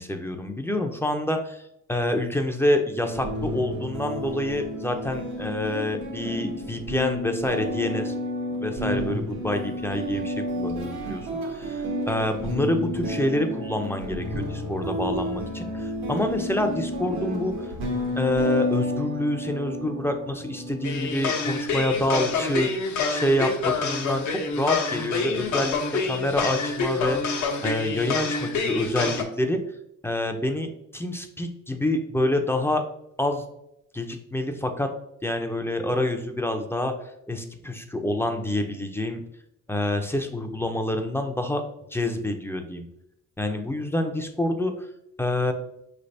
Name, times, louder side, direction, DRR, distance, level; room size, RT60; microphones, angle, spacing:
voice 1, 0.0-1.6 1.9-8.1 8.5-17.7 18.2-22.7 23.1-25.8 26.0-29.6 30.0-32.8 33.2-33.5 33.9-34.9 35.2-36.9 37.3-39.2 39.7-41.6 41.9-42.9 43.4-44.9 45.2-45.5, left 1 dB, 10° left, 5 dB, 0.4 m, -27 dB
sound 1, 3.0-21.1, equal, 85° right, 1.2 m, -31 dB
sound 2, 20.8-29.2, left 4 dB, 70° left, 0.8 m, -27 dB
4.9 x 3.3 x 2.6 m, 0.81 s
cardioid pair, 90°, 30 cm